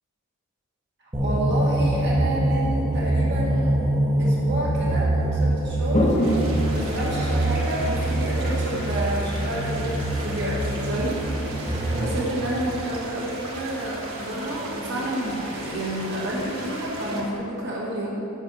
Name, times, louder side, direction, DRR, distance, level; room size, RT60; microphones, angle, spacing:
sound 1, 1.1-12.4, right 1 dB, 15° right, 1.2 m, -24 dB
voice 1, 1.2-3.8 4.2-6.1 6.7-18.2, right 1 dB, 50° right, -6 dB, 1.7 m, -30 dB
Toilet flush, 5.8-17.3, equal, 30° left, 1.2 m, -32 dB
sound 2, 6.2-17.2, right 2 dB, 75° right, 1.7 m, -38 dB
7.3 x 6.3 x 7.7 m, 2.9 s
head